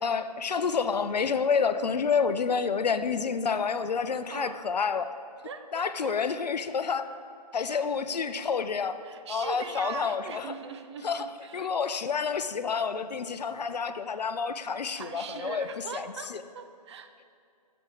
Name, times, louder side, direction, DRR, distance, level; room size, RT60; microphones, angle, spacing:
voice 1, 0.0-5.1 5.7-7.1 7.5-9.0 9.3-10.5 11.0-11.3 11.5-15.7 15.9-16.4, left 5 dB, 80° left, 12 dB, 0.5 m, -29 dB
voice 2, 4.3-4.6 5.4-6.2 7.7-7.9 9.0-11.7 14.9-17.2, right 6 dB, 45° right, 8 dB, 0.6 m, -41 dB
6.8 x 5.4 x 6.2 m, 2.4 s
figure-of-eight pair, 135°, 21 cm